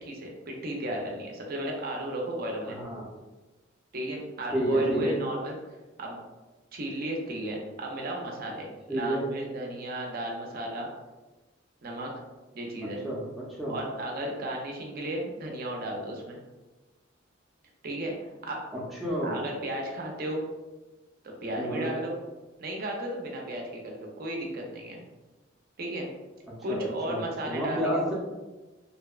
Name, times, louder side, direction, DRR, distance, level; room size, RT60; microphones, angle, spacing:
voice 1, 0.0-2.8 3.9-5.6 6.0-6.2 6.7-10.9 11.8-12.1 12.5-13.0 13.7-16.4 17.8-18.6 19.2-20.4 21.2-22.2 22.6-25.0 25.8-26.1 26.6-28.0, right 1 dB, 50° right, 0 dB, 0.5 m, -34 dB
voice 2, 2.7-3.1 4.5-5.2 8.9-9.3 12.8-13.2 13.6-13.8 18.7-19.4 21.6-21.9 26.7-28.1, right 1 dB, ahead, -6 dB, 0.5 m, -30 dB
2.7 x 2.1 x 2.3 m, 1.2 s
head